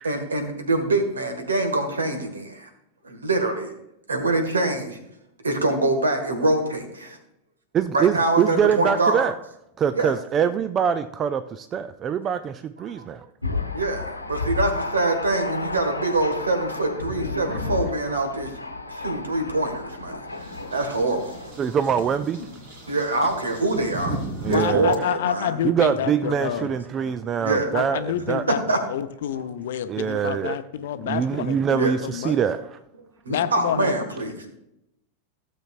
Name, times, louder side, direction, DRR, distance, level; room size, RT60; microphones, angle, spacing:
voice 1, 0.0-2.7 3.0-3.7 4.1-5.0 5.4-7.2 7.9-9.3 9.9-10.1 12.8-13.0 13.6-18.5 18.9-20.2 20.7-21.3 22.9-24.2 24.5-25.6 27.4-27.7 28.7-28.8 29.3-29.5 31.7-32.0 33.3-34.5, right 2 dB, 75° right, 1.7 m, -24 dB
voice 2, 7.7-9.3 9.8-13.3 21.6-22.4 24.4-25.1 25.6-28.4 29.9-30.6 31.0-32.8, right 8 dB, 25° right, 0.4 m, -24 dB
Thunder, 13.4-21.5, left 3 dB, 85° left, 1.0 m, -32 dB
sound 1, 20.3-25.0, right 2 dB, 50° right, 2.4 m, -36 dB
voice 3, 24.5-26.8 27.7-32.3 33.3-33.9, left 10 dB, 60° left, 0.7 m, -28 dB
16.0 x 7.4 x 2.5 m
figure-of-eight pair, 90°, 0 cm